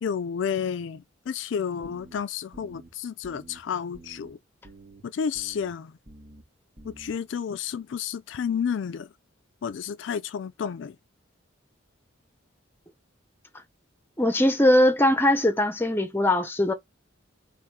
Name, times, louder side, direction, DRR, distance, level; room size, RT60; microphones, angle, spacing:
voice 1, 0.0-4.4 5.0-6.0 6.8-9.1 9.6-11.0, left 7 dB, 65° left, 0.3 m, -31 dB
sound 1, 1.8-2.2 2.5-2.9 3.2-3.6 3.9-4.3 4.6-5.0 5.4-5.7 6.1-6.4 6.8-7.1, right 2 dB, 30° right, 1.5 m, -49 dB
voice 2, 14.2-16.7, left 1 dB, 10° left, 0.7 m, -21 dB
3.6 x 3.1 x 4.6 m
head